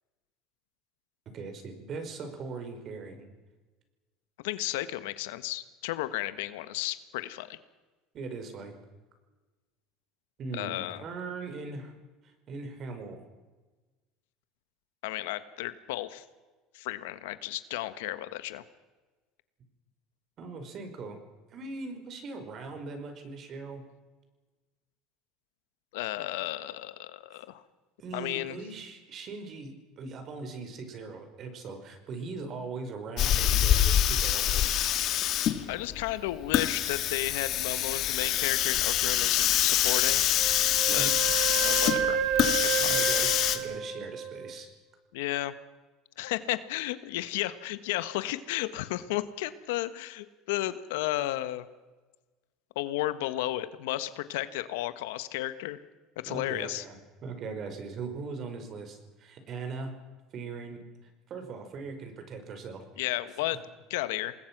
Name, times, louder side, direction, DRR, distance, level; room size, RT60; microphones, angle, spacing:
voice 1, 1.3-3.2 8.1-8.7 10.4-11.9 12.5-13.2 20.4-21.2 21.5-23.8 28.0-34.6 40.9-41.2 42.8-44.7 56.3-59.9 60.3-60.8 61.3-62.8 63.5-63.6, right 4 dB, 45° right, 7 dB, 5.1 m, -40 dB
voice 2, 4.4-7.6 10.5-11.0 15.0-16.2 16.7-18.6 25.9-27.6 28.1-28.6 35.2-40.3 40.9-41.1 41.6-42.2 42.6-43.0 45.1-45.5 46.2-51.6 52.7-55.8 56.2-56.8 63.0-63.6 63.9-64.3, left 16 dB, 85° left, 13 dB, 1.4 m, -33 dB
Hiss, 33.2-43.6, left 11 dB, 55° left, 2.1 m, -25 dB
Wind instrument woodwind instrument, 40.4-44.6, right 10 dB, 70° right, 2.2 m, -31 dB
27.5 x 20.0 x 6.1 m, 1.3 s
supercardioid pair, 115°, 0 cm